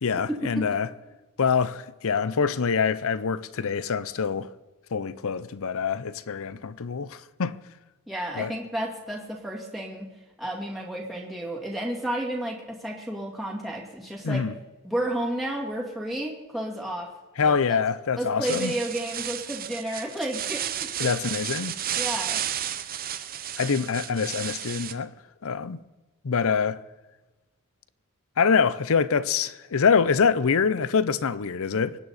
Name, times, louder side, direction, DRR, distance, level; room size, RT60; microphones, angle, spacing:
voice 1, 0.0-0.9 1.4-4.5 4.9-7.6 8.4-8.5 14.2-14.5 17.4-18.7 21.0-21.8 23.6-25.1 25.4-25.8 26.2-26.8 28.4-32.0, left 6 dB, 65° left, 0.6 m, -25 dB
voice 2, 8.1-10.1 10.4-14.4 14.8-17.1 17.4-17.8 18.2-21.1 21.9-22.4, right 1 dB, ahead, 2.2 m, -32 dB
sound 1, 18.4-24.9, right 10 dB, 40° right, 0.7 m, -32 dB
23.5 x 9.8 x 4.1 m
head